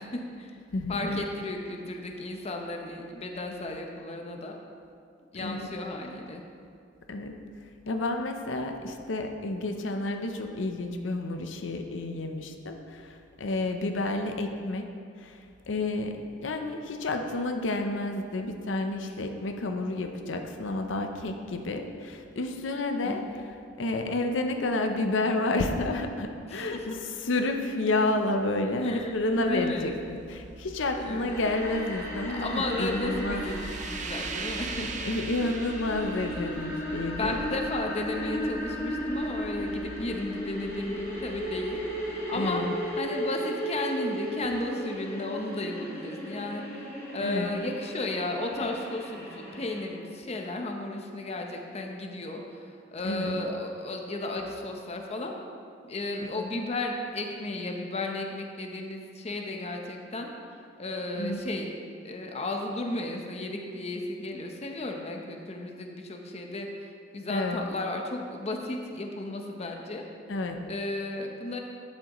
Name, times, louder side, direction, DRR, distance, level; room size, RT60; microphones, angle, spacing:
voice 1, 0.0-0.6 0.9-4.6 5.3-6.4 23.0-23.2 26.5-26.8 28.8-29.9 31.0-31.4 32.3-34.9 37.2-42.6 43.0-55.3 55.8-60.3 60.8-61.7 62.0-70.0 70.7-71.6, left 2 dB, 35° left, 2 dB, 0.7 m, -34 dB
voice 2, 0.7-1.2 5.3-5.7 7.1-7.4 7.9-14.8 15.2-23.2 23.8-33.4 34.0-34.1 34.7-37.4 42.3-42.7 47.2-47.5 53.0-53.4 56.3-56.5 61.1-61.5 67.3-67.6 70.3-70.6, left 2 dB, 85° left, 5 dB, 0.6 m, -30 dB
sound 1, 28.9-42.9, right 4 dB, 40° right, 0.5 m, -42 dB
sound 2, 31.3-49.9, equal, 15° left, 1.9 m, -36 dB
11.5 x 7.5 x 3.0 m, 2.3 s
head